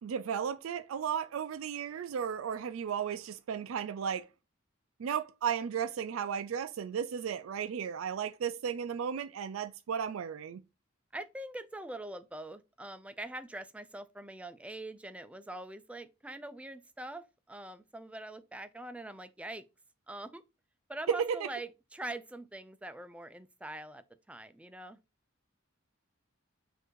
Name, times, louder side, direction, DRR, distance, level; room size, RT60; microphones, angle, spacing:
voice 1, 0.0-4.3 5.0-10.6 21.1-21.5, right 7 dB, 75° right, 0.4 m, -34 dB
voice 2, 11.1-19.6 20.1-20.4 20.9-25.0, right 1 dB, 5° right, 0.3 m, -43 dB
4.5 x 2.6 x 4.5 m
head